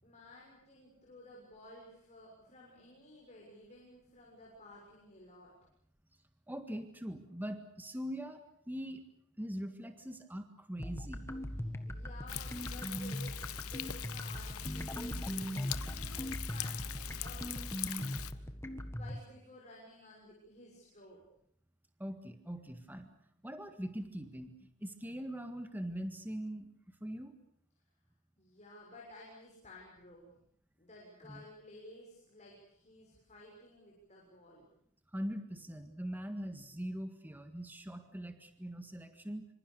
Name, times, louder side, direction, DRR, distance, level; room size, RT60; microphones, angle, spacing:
voice 1, 0.0-5.5 11.8-15.2 15.7-16.2 16.5-18.3 19.0-21.2 28.4-30.4 30.8-34.6, left 2 dB, 30° left, -3 dB, 6.9 m, -55 dB
voice 2, 6.5-9.0 9.4-11.2 22.0-23.1 23.4-26.7 27.0-27.4 31.3-31.4 35.1-39.5, equal, 10° right, 7 dB, 1.7 m, -42 dB
sound 1, 10.8-19.2, equal, 10° left, 1.7 m, -40 dB
Thunder, 12.3-18.3, left 12 dB, 75° left, 1.1 m, -42 dB
26.0 x 26.0 x 6.8 m, 0.70 s
head